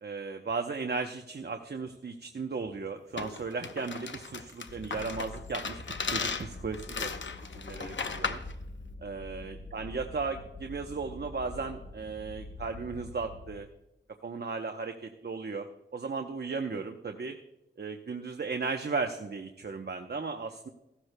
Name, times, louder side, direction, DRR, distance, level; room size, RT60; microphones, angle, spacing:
voice 1, 0.0-7.1 7.5-8.4 9.0-13.7 14.2-15.7 15.9-17.4 17.8-20.7, right 4 dB, 60° right, 5 dB, 0.8 m, -36 dB
sound 1, 3.2-8.5, left 5 dB, 80° left, 0.8 m, -36 dB
sound 2, 4.7-13.7, left 2 dB, 50° left, 1.0 m, -45 dB
16.0 x 13.0 x 2.2 m, 0.89 s
wide cardioid pair, 70°, 19 cm